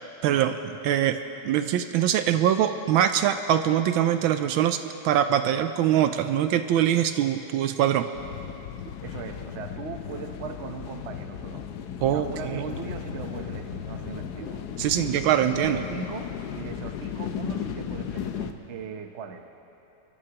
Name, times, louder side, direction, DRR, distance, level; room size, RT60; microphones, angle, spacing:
voice 1, 0.2-0.5 0.8-1.2 1.4-8.1 12.0-12.7 14.8-15.8, right 10 dB, 75° right, 9 dB, 1.3 m, -23 dB
sound 1, 8.1-18.5, left 8 dB, 70° left, 1.0 m, -35 dB
voice 2, 9.0-11.6 12.1-14.6 15.3-19.5, right 5 dB, 55° right, 5 dB, 0.7 m, -39 dB
26.5 x 13.0 x 2.9 m, 3.0 s
omnidirectional pair, 2.3 m